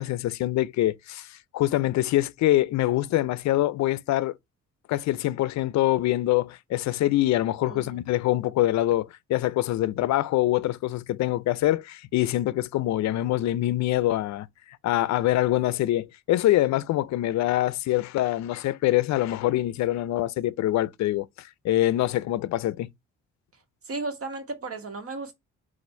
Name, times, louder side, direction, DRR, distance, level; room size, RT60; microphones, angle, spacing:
voice 1, 0.0-4.3 4.9-14.5 14.8-21.3 21.6-22.9, left 15 dB, 65° left, 0.5 m, -24 dB
voice 2, 7.6-8.0 23.5-25.3, right 3 dB, 50° right, 1.5 m, -35 dB
4.1 x 2.5 x 4.3 m
cardioid pair, 90°, 30 cm